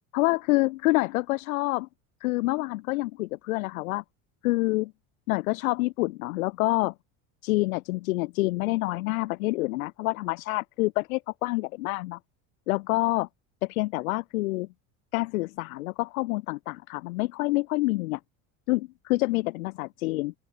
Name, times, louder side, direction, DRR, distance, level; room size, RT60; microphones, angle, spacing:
voice 1, 0.1-1.9 2.2-4.0 4.4-4.9 5.3-6.9 7.4-12.2 12.7-13.3 13.6-14.7 15.1-18.2 18.7-20.3, left 21 dB, 85° left, 3.2 m, -27 dB
open air
supercardioid pair, 110°, 40 cm